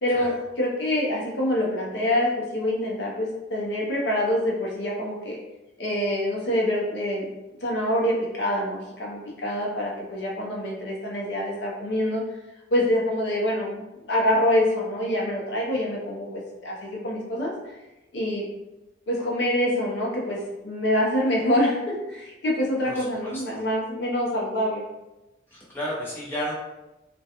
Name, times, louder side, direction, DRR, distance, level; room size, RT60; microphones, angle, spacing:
voice 1, 0.0-5.4 5.8-7.3 7.6-12.2 12.7-13.8 14.1-17.7 18.1-18.4 19.1-20.4 20.6-24.8, left 1 dB, 65° left, -3 dB, 0.5 m, -25 dB
voice 2, 22.9-23.6 25.5-26.5, equal, 10° left, -8 dB, 0.7 m, -33 dB
2.3 x 2.2 x 2.8 m, 1.0 s
head